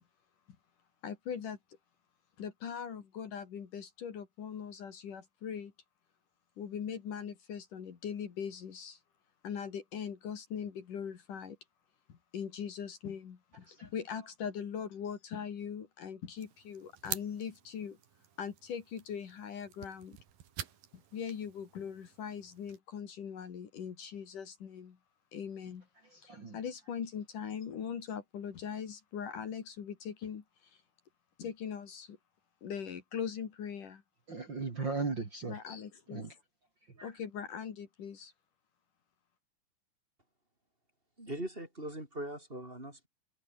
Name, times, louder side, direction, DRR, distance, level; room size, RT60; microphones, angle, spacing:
voice 1, 1.0-1.6 2.4-5.7 6.6-9.0 9.4-11.6 12.1-18.0 18.4-20.2 20.9-25.0 25.3-25.9 26.2-30.7 31.4-32.2 32.6-34.0 35.5-36.3 37.0-38.3, left 7 dB, 60° left, 3.9 m, -41 dB
sound 1, 16.4-22.8, right 10 dB, 70° right, 3.8 m, -47 dB
voice 2, 26.0-26.6 34.3-35.6 36.1-36.3 36.9-37.1, right 4 dB, 30° right, 3.2 m, -38 dB
voice 3, 41.2-43.1, right 1 dB, 15° right, 5.5 m, -41 dB
omnidirectional pair, 4.3 m